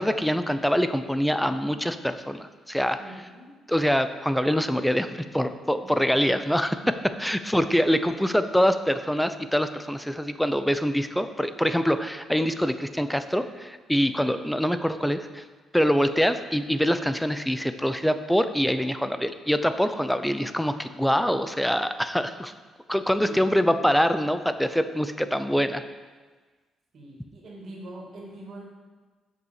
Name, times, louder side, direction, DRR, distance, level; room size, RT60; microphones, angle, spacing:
voice 1, 0.0-3.3 3.7-15.4 15.7-22.5 22.9-25.8, equal, ahead, 10 dB, 0.5 m, -24 dB
voice 2, 3.0-3.5 5.8-5.9 7.8-8.2 14.1-14.3 23.2-23.4 23.7-23.8 26.9-28.6, right 1 dB, 55° right, -2 dB, 2.6 m, -43 dB
6.9 x 5.6 x 6.5 m, 1.4 s
cardioid pair, 90°, 0 cm